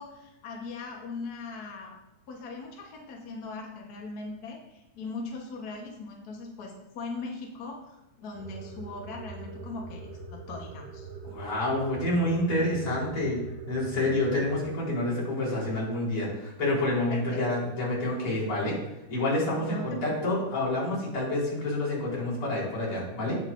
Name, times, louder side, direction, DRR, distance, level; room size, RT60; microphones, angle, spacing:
voice 1, 0.0-2.0 2.3-10.0 10.3-11.1 17.1-17.2 19.6-20.1, left 3 dB, 70° left, 0 dB, 0.9 m, -40 dB
sound 1, 8.3-14.7, right 4 dB, 65° right, 1.8 m, -43 dB
voice 2, 11.2-13.4 13.7-18.7 19.1-23.4, left 1 dB, 45° left, -7 dB, 4.7 m, -28 dB
17.5 x 5.8 x 2.6 m, 0.93 s
omnidirectional pair, 3.6 m